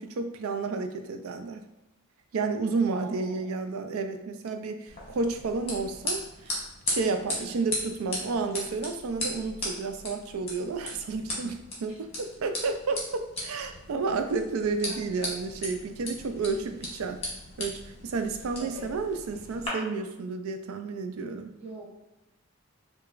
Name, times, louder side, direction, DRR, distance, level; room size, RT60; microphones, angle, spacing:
voice 1, 0.0-1.6 2.3-17.2 17.6-21.5, right 4 dB, 90° right, 7 dB, 0.4 m, -31 dB
voice 2, 2.9-3.5 7.3-7.6 11.8-12.0 14.8-15.0 18.5-18.9 21.6-21.9, right 1 dB, 30° right, -4 dB, 0.8 m, -44 dB
sound 1, 4.9-19.7, left 1 dB, 30° left, 1.1 m, -37 dB
4.7 x 2.3 x 2.4 m, 0.99 s
head